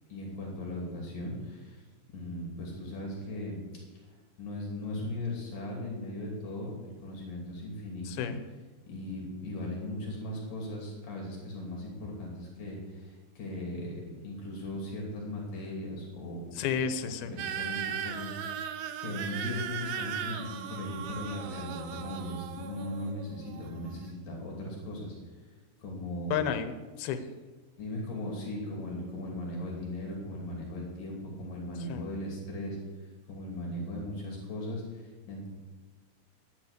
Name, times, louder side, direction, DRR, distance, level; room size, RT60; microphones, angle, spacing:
voice 1, 0.1-1.8 2.1-3.6 4.4-8.3 8.9-16.4 16.7-16.8 17.3-18.7 19.0-25.1 25.8-26.3 27.8-32.8 33.3-35.0 35.3-35.5, left 1 dB, 65° left, -2 dB, 4.2 m, -38 dB
voice 2, 8.1-8.4 16.6-17.3 26.3-27.2 31.9-32.0, left 7 dB, 85° left, 10 dB, 2.7 m, -31 dB
sound 1, 17.4-24.1, right 8 dB, 70° right, 1.9 m, -38 dB
12.0 x 9.9 x 6.6 m, 1.3 s
omnidirectional pair, 4.3 m